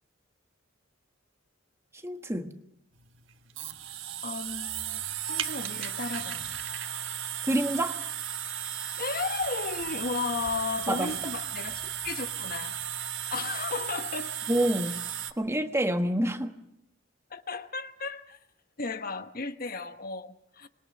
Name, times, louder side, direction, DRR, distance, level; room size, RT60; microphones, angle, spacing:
voice 1, 2.0-2.5 7.5-8.0 10.9-11.1 14.5-15.0 15.4-16.6, right 1 dB, 15° right, 1.4 m, -27 dB
sound 1, 2.9-15.3, right 10 dB, 70° right, 1.4 m, -35 dB
voice 2, 4.2-5.0 5.3-6.5 9.0-12.7 13.3-14.4 17.3-18.4 18.8-20.7, left 4 dB, 45° left, 1.2 m, -34 dB
26.0 x 21.5 x 6.7 m
head